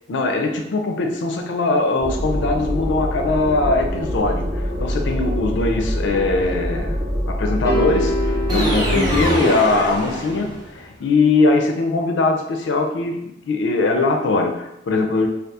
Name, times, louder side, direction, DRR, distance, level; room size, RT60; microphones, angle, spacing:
voice 1, 0.1-15.3, left 3 dB, 90° left, 4 dB, 0.4 m, -21 dB
sound 1, 2.0-9.3, equal, 65° right, 1.2 m, -25 dB
sound 2, 7.6-10.1, left 1 dB, 20° left, 0.5 m, -26 dB
sound 3, 8.5-10.8, right 1 dB, 25° right, 0.7 m, -23 dB
2.7 x 2.4 x 2.3 m, 0.83 s
head